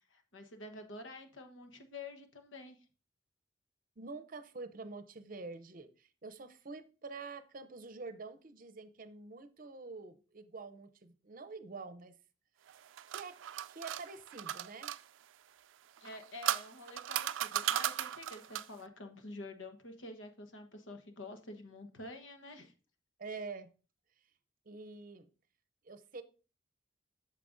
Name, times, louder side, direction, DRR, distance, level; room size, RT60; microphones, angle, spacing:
voice 1, 0.1-2.8 16.0-22.7, left 2 dB, 85° left, 1.2 m, -48 dB
voice 2, 4.0-12.2 13.1-13.4 13.7-14.9 23.2-23.7 24.7-25.3 25.8-26.2, right 4 dB, 45° right, 0.6 m, -47 dB
sound 1, 12.7-15.0 16.0-18.8, right 11 dB, 85° right, 0.4 m, -36 dB
8.5 x 6.7 x 2.6 m
head